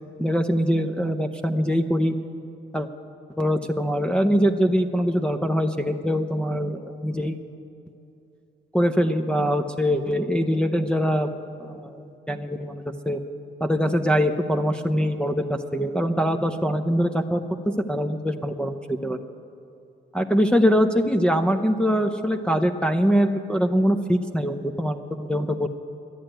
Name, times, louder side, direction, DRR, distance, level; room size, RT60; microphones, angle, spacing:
voice 1, 0.2-2.1 2.7-2.9 3.4-7.4 8.7-11.3 11.6-13.2 13.6-19.2 20.1-25.7, equal, 5° left, 2 dB, 0.6 m, -23 dB
11.0 x 10.5 x 8.9 m, 2.8 s
cardioid pair, 90°, 20 cm